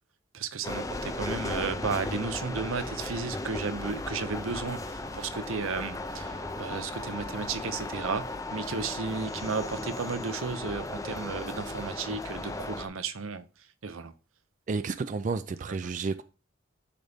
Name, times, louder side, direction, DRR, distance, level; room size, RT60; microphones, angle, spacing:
voice 1, 0.3-13.4 13.8-14.1, right 4 dB, 90° right, 0.8 m, -34 dB
sound 1, 0.6-12.9, left 2 dB, 15° left, 0.5 m, -36 dB
sound 2, 3.8-10.6, left 5 dB, 35° left, 1.0 m, -54 dB
voice 2, 14.7-16.2, right 4 dB, 40° right, 0.3 m, -31 dB
10.0 x 4.1 x 3.5 m
head